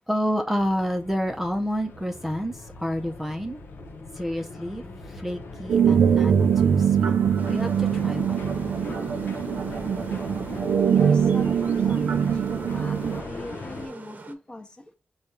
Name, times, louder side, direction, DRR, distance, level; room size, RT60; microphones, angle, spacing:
voice 1, 0.1-3.6 4.2-4.8 5.1-7.2 7.5-8.4, equal, 10° right, 0.6 m, -29 dB
sound 1, 0.6-13.9, left 3 dB, 80° left, 0.8 m, -39 dB
sound 2, 5.7-13.2, right 7 dB, 90° right, 0.4 m, -22 dB
sound 3, 7.3-14.3, right 3 dB, 50° right, 0.8 m, -44 dB
voice 2, 10.9-12.2 12.7-14.8, left 1 dB, 25° left, 0.9 m, -39 dB
5.1 x 2.3 x 4.1 m
cardioid pair, 75°, 4 cm